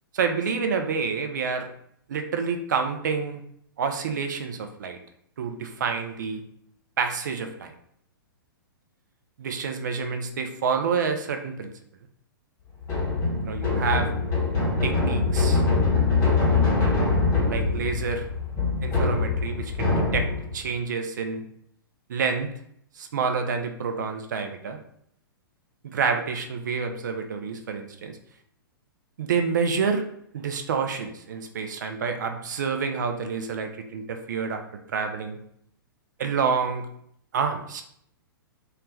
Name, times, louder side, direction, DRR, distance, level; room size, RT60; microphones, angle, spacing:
voice 1, 0.1-1.7 2.1-3.4 3.8-5.0 5.4-6.4 7.0-7.7 9.4-11.7 13.4-14.1 14.8-15.6 17.5-18.3 18.8-20.3 20.5-21.4 22.1-22.5 23.0-24.8 25.8-28.2 29.2-30.1 30.3-35.4 36.2-36.8 37.3-37.8, right 5 dB, 55° right, 5 dB, 0.4 m, -28 dB
sound 1, 12.8-20.6, left 3 dB, 25° left, 0.8 m, -23 dB
2.3 x 2.1 x 3.1 m, 0.69 s
figure-of-eight pair, 110°, 12 cm